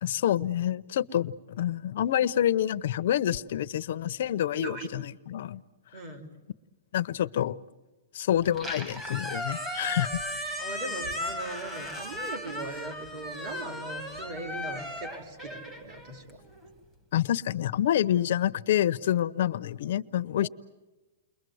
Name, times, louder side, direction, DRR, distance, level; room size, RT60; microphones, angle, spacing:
voice 1, 0.0-5.6 6.9-7.6 8.1-10.2 17.1-20.5, left 11 dB, 50° left, 13 dB, 0.8 m, -27 dB
voice 2, 4.5-4.9 5.9-6.3 10.6-16.4 20.4-20.5, right 3 dB, 30° right, 7 dB, 3.6 m, -39 dB
Squeak, 8.4-16.7, left 1 dB, 10° right, 2.5 m, -36 dB
30.0 x 22.5 x 7.9 m, 1.1 s
hypercardioid pair, 175°, 0 cm